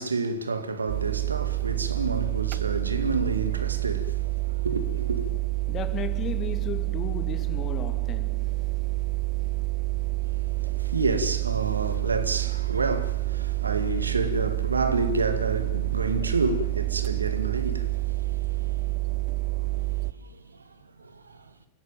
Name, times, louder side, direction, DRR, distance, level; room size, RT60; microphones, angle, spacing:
voice 1, 0.0-5.3 10.2-21.5, right 3 dB, 75° right, 2.0 m, -30 dB
sound 1, 0.9-20.1, right 20 dB, 45° right, 0.9 m, -28 dB
voice 2, 5.7-8.5, left 8 dB, 30° left, 2.5 m, -35 dB
28.0 x 16.5 x 9.1 m
figure-of-eight pair, 90°, 0 cm